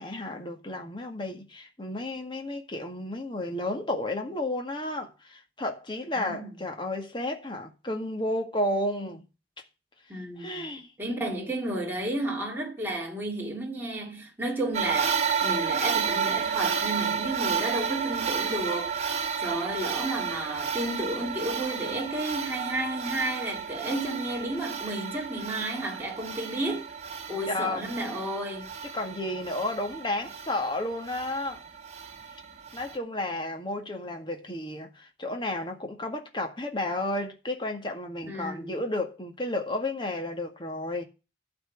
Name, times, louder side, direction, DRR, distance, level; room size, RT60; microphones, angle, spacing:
voice 1, 0.0-9.2 10.4-10.9 27.5-27.9 28.8-31.6 32.7-41.0, left 1 dB, 25° left, 1.8 m, -32 dB
voice 2, 6.2-6.5 10.1-10.7 11.0-15.1 15.4-26.9 27.3-28.7 38.2-38.8, right 1 dB, 10° right, 2.2 m, -32 dB
sound 1, 14.7-33.0, right 7 dB, 35° right, 1.5 m, -32 dB
12.0 x 4.5 x 8.3 m
head